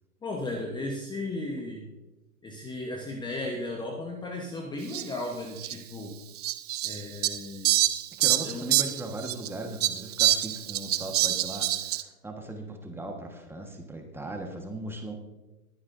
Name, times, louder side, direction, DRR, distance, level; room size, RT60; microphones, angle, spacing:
voice 1, 0.2-1.8 2.4-6.1 6.8-7.8 8.4-8.8, left 2 dB, 10° left, 1 dB, 1.1 m, -35 dB
Fowl, 4.9-5.0 5.6-5.7 6.4-9.5 9.8-12.0, right 14 dB, 30° right, 0.4 m, -26 dB
voice 2, 8.2-15.1, right 1 dB, 5° right, 3 dB, 1.4 m, -38 dB
20.5 x 9.6 x 2.6 m, 1.1 s
hypercardioid pair, 125°, 44 cm